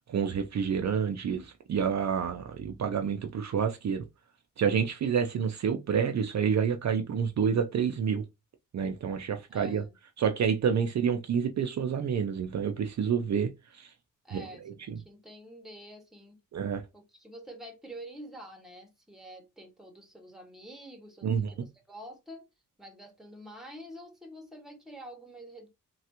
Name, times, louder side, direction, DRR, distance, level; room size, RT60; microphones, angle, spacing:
voice 1, 0.1-4.1 4.6-8.2 8.7-9.8 10.2-13.9 14.3-15.0 16.5-16.8 21.2-21.5, right 7 dB, 55° right, 0.5 m, -28 dB
voice 2, 9.5-9.9 14.2-16.4 16.9-22.5 22.8-25.7, right 1 dB, ahead, 1.0 m, -47 dB
3.3 x 2.3 x 2.8 m
wide cardioid pair, 90°, 33 cm